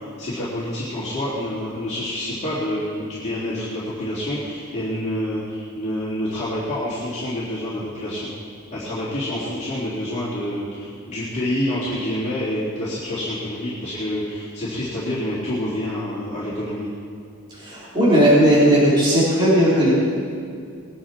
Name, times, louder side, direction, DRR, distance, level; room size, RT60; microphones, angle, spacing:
voice 1, 0.0-8.3 8.7-16.9, left 1 dB, 30° left, -10 dB, 3.3 m, -27 dB
voice 2, 17.6-19.9, equal, 20° right, -9 dB, 4.1 m, -16 dB
21.0 x 10.0 x 4.5 m, 2.3 s
head